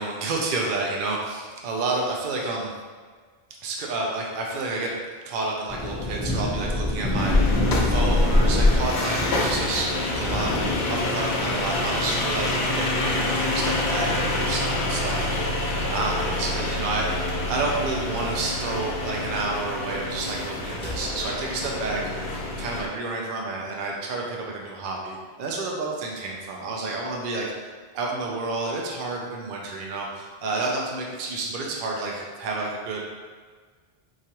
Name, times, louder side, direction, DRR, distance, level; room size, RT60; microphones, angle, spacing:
voice 1, 0.0-2.8 3.6-4.9 5.2-7.3 7.8-15.2 15.9-17.1 17.5-27.5 27.9-33.0, right 3 dB, 60° right, -1 dB, 0.7 m, -30 dB
sound 1, 5.7-22.1, left 1 dB, 5° left, 1.0 m, -27 dB
sound 2, 7.2-22.9, left 2 dB, 80° left, 0.9 m, -27 dB
Telephone, 15.3-15.5 16.0-16.5 17.0-17.5 18.0-18.5 19.0-19.5 20.0-20.3 21.3-21.5, left 11 dB, 45° left, 0.8 m, -41 dB
4.7 x 2.4 x 2.8 m, 1.6 s
omnidirectional pair, 1.1 m